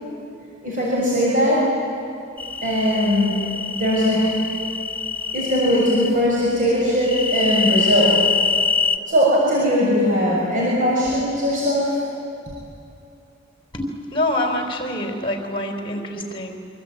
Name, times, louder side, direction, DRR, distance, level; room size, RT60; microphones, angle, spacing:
voice 1, 0.6-1.7 2.6-3.5 3.8-4.3 5.3-8.2 9.1-12.0, equal, 45° right, -6 dB, 6.6 m, -19 dB
sound 1, 2.4-6.1 7.0-9.0, left 5 dB, 10° left, 1.0 m, -24 dB
voice 2, 13.7-16.6, left 1 dB, 25° left, 4 dB, 4.1 m, -26 dB
25.5 x 25.5 x 9.0 m, 2.8 s
head